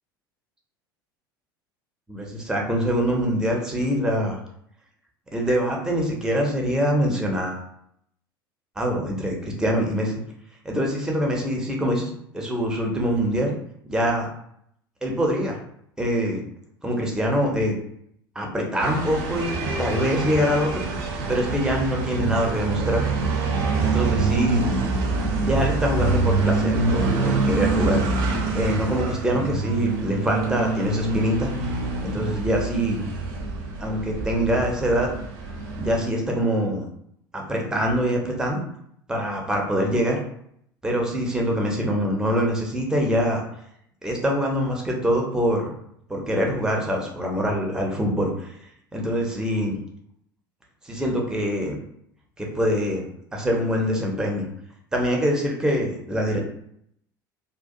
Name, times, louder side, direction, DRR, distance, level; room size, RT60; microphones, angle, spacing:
voice 1, 2.1-4.4 5.3-7.6 8.8-10.2 10.6-13.5 13.9-14.3 15.0-15.6 16.0-16.4 16.8-17.7 18.4-20.9 21.3-23.1 23.8-24.7 25.4-28.0 28.5-31.5 32.0-33.0 33.8-35.1 35.8-36.8 37.3-38.6 39.1-40.2 40.8-43.4 44.0-45.8 46.1-48.5 48.9-49.7 50.8-51.8 52.4-54.5 54.9-56.4, equal, 5° right, 0 dB, 0.6 m, -24 dB
sound 1, 18.8-36.0, right 3 dB, 50° right, 0.6 m, -25 dB
2.3 x 2.2 x 2.6 m, 0.70 s
figure-of-eight pair, 70°, 12 cm